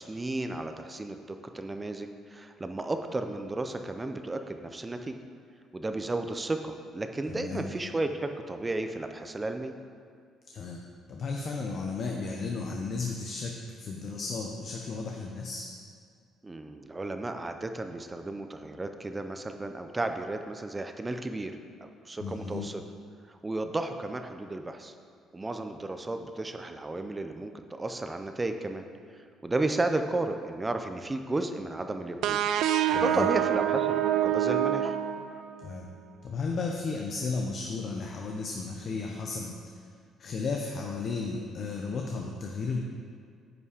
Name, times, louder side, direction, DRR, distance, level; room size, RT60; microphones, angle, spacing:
voice 1, 0.0-5.2 5.7-9.7 16.4-21.5 21.8-22.8 23.3-24.9 25.3-28.9 29.1-32.4 32.9-35.0, right 2 dB, 15° right, 7 dB, 0.6 m, -33 dB
voice 2, 7.3-7.8 10.5-10.8 11.1-13.5 13.8-15.7 22.2-22.7 32.9-33.3 35.6-35.9 36.2-39.5 40.2-42.8, left 4 dB, 45° left, 1 dB, 0.8 m, -34 dB
sound 1, 32.2-35.8, right 11 dB, 75° right, 0.3 m, -26 dB
9.4 x 5.6 x 5.0 m, 2.2 s
cardioid pair, 135°, 0 cm